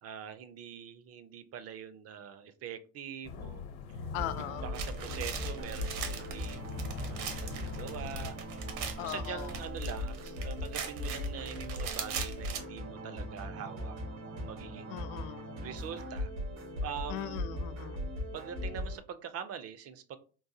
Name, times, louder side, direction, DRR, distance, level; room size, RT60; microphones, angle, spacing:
voice 1, 0.0-3.6 4.5-6.8 7.1-8.4 9.0-14.0 14.3-15.0 15.6-16.3 16.8-17.5 18.3-20.2, right 8 dB, 35° right, 11 dB, 0.4 m, -43 dB
sound 1, 3.2-8.3, left 5 dB, 60° left, 0.9 m, -43 dB
voice 2, 4.1-4.6 9.0-9.5 14.9-15.6 17.1-18.1, left 12 dB, 75° left, 12 dB, 0.5 m, -39 dB
sound 2, 4.1-19.0, left 1 dB, 90° right, 1.6 m, -39 dB
sound 3, 4.7-12.6, right 6 dB, 75° right, 0.9 m, -41 dB
3.8 x 2.5 x 2.7 m, 0.38 s
supercardioid pair, 100°, 43 cm